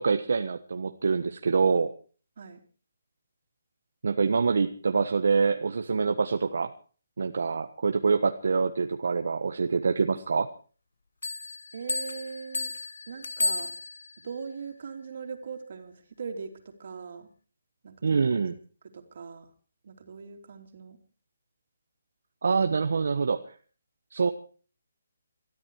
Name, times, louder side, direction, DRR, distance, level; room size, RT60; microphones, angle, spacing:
voice 1, 0.0-1.9 4.0-6.7 7.2-10.5 18.0-18.5 22.4-23.4 24.1-24.3, right 5 dB, 65° right, 7 dB, 1.3 m, -25 dB
Bell, 11.2-14.3, left 3 dB, 85° left, 1.5 m, -33 dB
voice 2, 11.7-12.7 13.1-13.7 14.2-17.3 17.8-18.3 18.9-19.5 19.8-21.0, right 5 dB, 45° right, 6 dB, 3.2 m, -40 dB
22.5 x 13.5 x 4.8 m, 0.40 s
hypercardioid pair, 175°, 0 cm